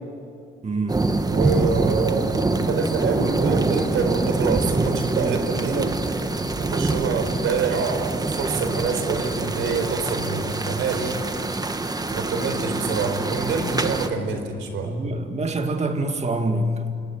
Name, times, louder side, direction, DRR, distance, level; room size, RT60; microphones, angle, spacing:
voice 1, 0.6-1.1 14.8-17.0, right 1 dB, 35° right, 2.2 m, -26 dB
sound 1, 0.9-14.1, right 2 dB, 20° right, 1.4 m, -25 dB
voice 2, 1.3-6.0 6.6-11.2 12.1-14.9, right 5 dB, 80° right, 4.3 m, -26 dB
29.5 x 18.5 x 9.4 m
cardioid pair, 90°, 20 cm